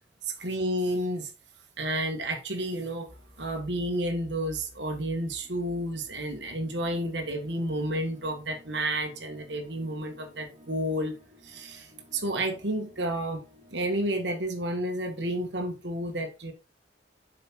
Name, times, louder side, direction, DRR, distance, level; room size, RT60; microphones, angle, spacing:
voice 1, 0.2-1.3 1.8-3.1 3.4-11.1 11.4-13.4 13.7-16.5, right 1 dB, 70° right, 1.7 m, -31 dB
sound 1, 3.1-14.2, left 1 dB, 35° right, 2.8 m, -53 dB
7.3 x 5.5 x 4.6 m
head